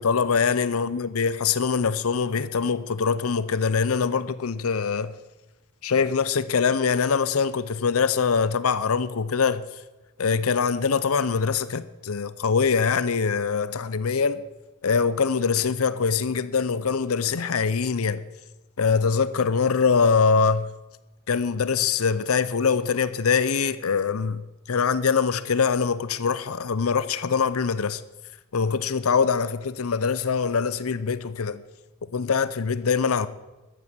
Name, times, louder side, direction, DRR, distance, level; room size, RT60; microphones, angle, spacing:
voice 1, 0.0-5.1 5.8-9.6 10.2-14.4 14.8-18.2 18.8-20.7 21.3-24.4 24.7-28.0 28.5-31.6 32.1-33.3, left 5 dB, 75° left, 0.7 m, -23 dB
14.0 x 9.6 x 7.4 m
head